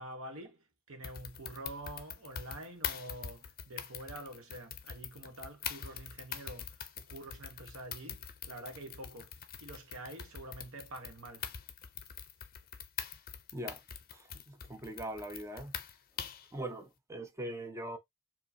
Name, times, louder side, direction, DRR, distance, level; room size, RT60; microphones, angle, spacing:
voice 1, 0.0-11.5, right 1 dB, 65° right, 1.2 m, -47 dB
sound 1, 1.0-16.5, left 8 dB, 45° left, 0.5 m, -44 dB
voice 2, 14.1-15.7 16.5-18.0, right 1 dB, 15° right, 0.5 m, -41 dB
4.6 x 2.9 x 2.7 m
head